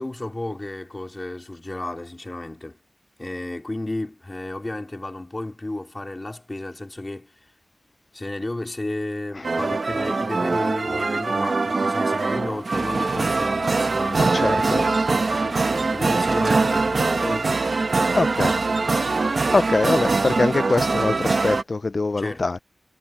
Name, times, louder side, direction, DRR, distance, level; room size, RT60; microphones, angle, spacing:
voice 1, 0.0-2.8 3.2-7.5 8.1-17.7 18.4-18.8 22.2-22.5, left 2 dB, 25° left, 3.1 m, -33 dB
sound 1, 9.4-21.6, right 3 dB, 60° right, 1.2 m, -22 dB
voice 2, 14.2-14.8 18.1-18.5 19.2-22.6, left 3 dB, 50° left, 0.5 m, -23 dB
wide cardioid pair, 95°, 0 cm